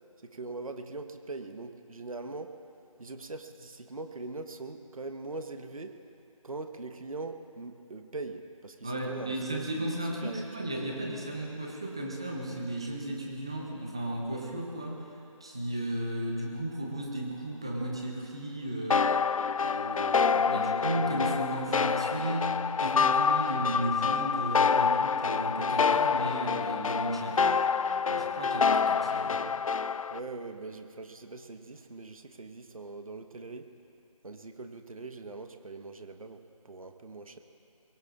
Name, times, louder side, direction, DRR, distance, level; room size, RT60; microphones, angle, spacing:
voice 1, 0.2-2.6 3.0-6.0 6.4-10.0 10.2-10.5 30.1-33.7 34.2-37.4, right 3 dB, 75° right, 7 dB, 1.1 m, -41 dB
voice 2, 8.8-15.0 15.4-19.0 19.6-22.5 22.8-27.6 28.1-29.6, right 1 dB, 10° right, 0 dB, 0.5 m, -34 dB
sound 1, 18.9-30.2, left 6 dB, 70° left, 0.4 m, -27 dB
24.5 x 22.0 x 2.5 m, 2.9 s
figure-of-eight pair, 170°, 18 cm